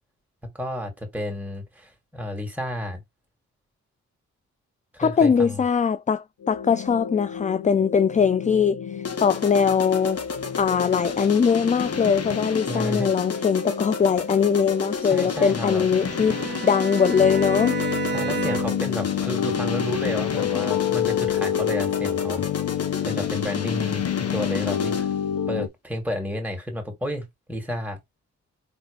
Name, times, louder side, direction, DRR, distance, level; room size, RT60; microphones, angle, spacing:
voice 1, 0.5-3.0 4.9-5.6 12.7-13.1 15.0-15.8 18.1-22.4 23.0-25.1 25.5-28.0, left 1 dB, 5° right, 2.6 m, -31 dB
voice 2, 5.0-10.2 10.6-16.4 16.6-17.8, left 6 dB, 25° left, 0.4 m, -21 dB
sound 1, 6.4-25.7, left 9 dB, 70° left, 0.7 m, -29 dB
sound 2, 9.0-25.2, left 5 dB, 50° left, 1.2 m, -32 dB
Bowed string instrument, 15.8-18.9, right 3 dB, 35° right, 1.0 m, -30 dB
4.1 x 3.4 x 3.3 m
cardioid pair, 55°, 31 cm